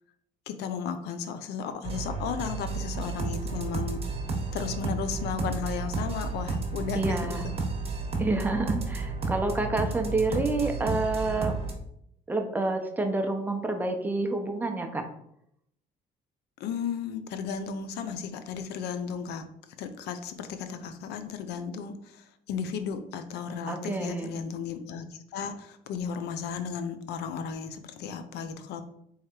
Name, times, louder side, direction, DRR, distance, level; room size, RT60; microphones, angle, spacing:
voice 1, 0.5-4.0 4.5-7.5 16.6-19.5 19.8-28.8, left 6 dB, 80° left, 9 dB, 0.6 m, -34 dB
sound 1, 1.8-11.7, right 3 dB, 35° right, 1.1 m, -32 dB
voice 2, 6.9-7.4 8.2-11.6 12.3-15.1 23.7-24.3, right 2 dB, 10° right, 4 dB, 0.7 m, -28 dB
3.6 x 3.2 x 4.4 m, 0.73 s
cardioid pair, 110°, 17 cm